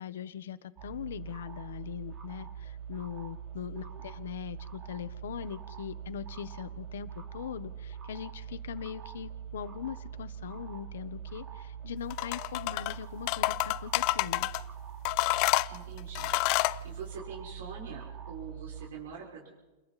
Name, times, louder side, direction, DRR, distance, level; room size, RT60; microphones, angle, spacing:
voice 1, 0.0-14.5, left 9 dB, 85° left, 13 dB, 1.2 m, -41 dB
sound 1, 0.8-18.9, right 8 dB, 25° right, 3.1 m, -43 dB
sound 2, 12.1-12.9 13.3-14.6 15.0-16.8, left 21 dB, 45° left, 0.6 m, -28 dB
voice 2, 15.7-16.6 16.8-19.5, right 6 dB, 75° right, -3 dB, 6.0 m, -44 dB
30.0 x 21.5 x 4.3 m, 1.2 s
supercardioid pair, 150°, 0 cm